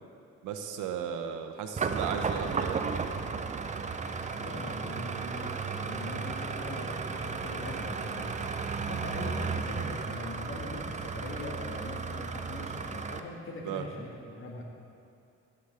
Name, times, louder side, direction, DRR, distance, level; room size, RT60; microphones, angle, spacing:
voice 1, 0.4-3.1 13.6-13.8, right 7 dB, 85° right, 6 dB, 0.8 m, -36 dB
sound 1, 1.8-13.2, right 5 dB, 25° right, 0.5 m, -34 dB
voice 2, 4.3-8.5 8.8-14.6, left 2 dB, 45° left, -1 dB, 1.6 m, -41 dB
13.5 x 8.0 x 3.4 m, 2.5 s
cardioid pair, 90°, 30 cm